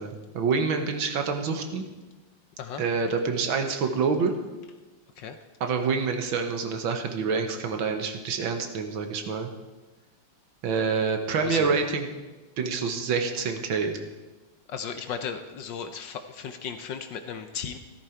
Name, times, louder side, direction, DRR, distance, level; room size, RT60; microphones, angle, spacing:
voice 1, 0.0-1.8 2.8-4.3 5.6-9.5 10.6-12.1 12.6-14.0, right 5 dB, 65° right, 6 dB, 1.9 m, -27 dB
voice 2, 11.4-11.9 14.7-17.8, left 7 dB, 65° left, 8 dB, 1.3 m, -35 dB
14.5 x 13.5 x 4.5 m, 1.2 s
omnidirectional pair, 2.4 m